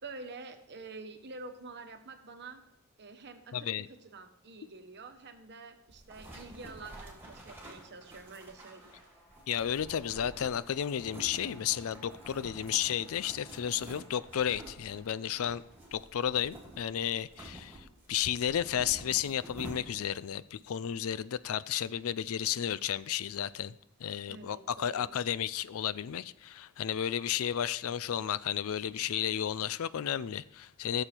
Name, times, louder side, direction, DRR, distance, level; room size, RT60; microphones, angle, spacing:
voice 1, 0.0-2.6 3.0-9.0 24.3-25.0, right 3 dB, 50° right, 1.2 m, -47 dB
voice 2, 3.5-3.8 9.5-15.6 15.9-23.7 24.0-31.0, left 9 dB, 65° left, 0.4 m, -33 dB
sound 1, 5.9-20.2, right 1 dB, 10° right, 2.9 m, -50 dB
sound 2, 7.9-17.2, left 1 dB, 15° left, 2.4 m, -60 dB
14.5 x 7.0 x 4.5 m
head